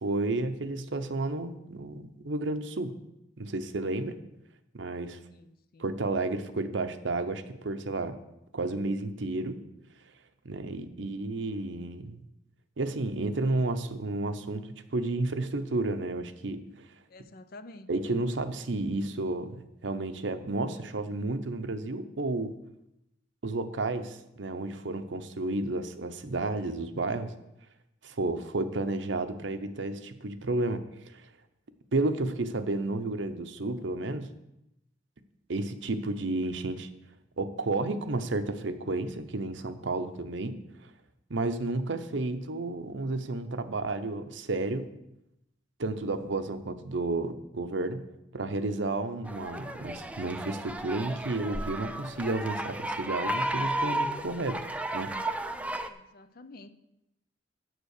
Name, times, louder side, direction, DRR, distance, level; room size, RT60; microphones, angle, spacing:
voice 1, 0.0-3.0 3.4-4.2 4.7-5.2 5.8-8.2 8.5-9.6 10.4-12.2 12.8-16.6 17.9-19.6 19.8-22.6 23.4-27.3 28.0-31.2 31.9-34.3 35.5-36.9 37.4-40.6 41.3-44.9 45.8-48.0 48.3-54.7 54.9-55.1, right 2 dB, 70° right, 10 dB, 0.8 m, -32 dB
voice 2, 5.4-5.9 17.1-17.9 55.9-56.7, left 2 dB, 50° left, 11 dB, 0.6 m, -49 dB
sound 1, 49.3-55.9, right 1 dB, 5° right, 0.4 m, -33 dB
8.1 x 7.6 x 6.5 m, 0.88 s
head